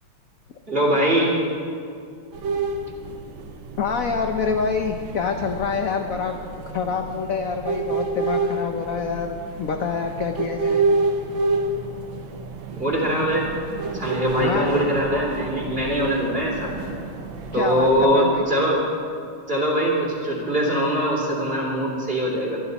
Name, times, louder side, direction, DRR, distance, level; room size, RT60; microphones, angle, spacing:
voice 1, 0.7-1.4 12.7-13.5 13.8-16.7 17.5-18.8 19.5-22.6, equal, 25° right, -2 dB, 3.3 m, -22 dB
sound 1, 2.3-18.0, right 3 dB, 65° right, 1.7 m, -29 dB
voice 2, 3.8-6.3 6.7-10.8 14.4-14.8 17.5-18.4, left 5 dB, 65° left, 5 dB, 0.8 m, -26 dB
24.5 x 11.5 x 4.1 m, 2.3 s
omnidirectional pair, 2.4 m